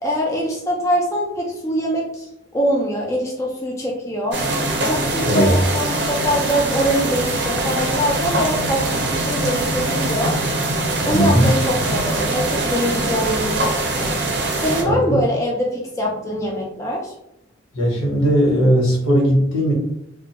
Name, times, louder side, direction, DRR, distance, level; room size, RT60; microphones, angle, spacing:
voice 1, 0.0-4.4 4.8-10.4 11.0-14.3 14.6-17.1, equal, 15° left, -3 dB, 0.3 m, -23 dB
sound 1, 4.3-14.8, right 2 dB, 50° right, 0.5 m, -22 dB
voice 2, 5.2-5.5 11.1-11.5 14.8-15.2 17.7-19.7, equal, 85° left, -3 dB, 1.1 m, -17 dB
2.4 x 2.2 x 2.8 m, 0.78 s
head